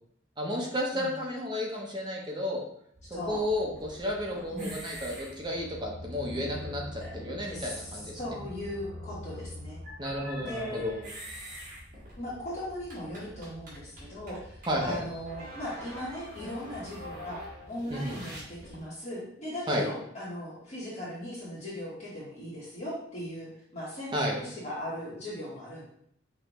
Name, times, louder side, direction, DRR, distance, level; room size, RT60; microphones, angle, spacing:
voice 1, 0.4-2.6 3.1-8.2 10.0-10.9 14.7-15.0 17.9-18.2 19.7-19.8 24.1-24.4, left 1 dB, 25° right, -1 dB, 0.7 m, -32 dB
sound 1, 3.0-18.8, equal, 45° right, 1.6 m, -44 dB
voice 2, 3.1-3.4 4.5-4.7 7.0-7.1 7.5-7.8 8.2-9.8 10.4-11.1 12.2-17.4 17.7-25.8, left 1 dB, 35° left, -8 dB, 1.4 m, -38 dB
5.4 x 2.7 x 3.0 m, 0.69 s
head